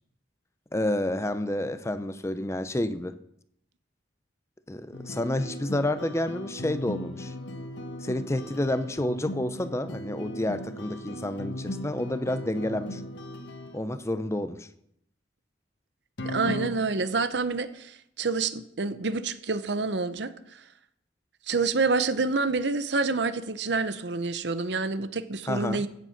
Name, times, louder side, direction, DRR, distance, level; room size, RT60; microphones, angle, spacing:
voice 1, 0.7-3.1 4.7-7.3 8.0-13.0 13.7-14.7 25.5-25.8, left 1 dB, 15° left, 12 dB, 0.6 m, -29 dB
sound 1, 4.9-13.8 16.2-16.7, left 1 dB, 75° left, 1.3 m, -37 dB
voice 2, 16.2-20.6 21.5-25.9, right 4 dB, 65° right, 13 dB, 0.8 m, -28 dB
16.0 x 7.5 x 5.8 m, 0.76 s
head